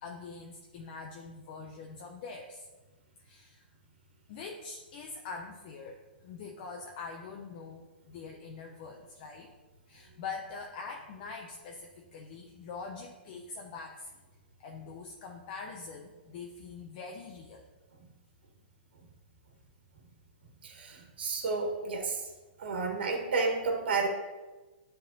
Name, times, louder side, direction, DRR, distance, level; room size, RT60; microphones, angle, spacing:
voice 1, 0.0-2.7 3.2-3.6 4.3-9.5 9.9-14.1 14.6-17.6, left 4 dB, 50° left, 1 dB, 0.9 m, -44 dB
voice 2, 20.6-22.3 22.6-24.1, right 4 dB, 70° right, 3 dB, 1.6 m, -31 dB
9.7 x 4.0 x 4.1 m, 1.2 s
hypercardioid pair, 125°, 6 cm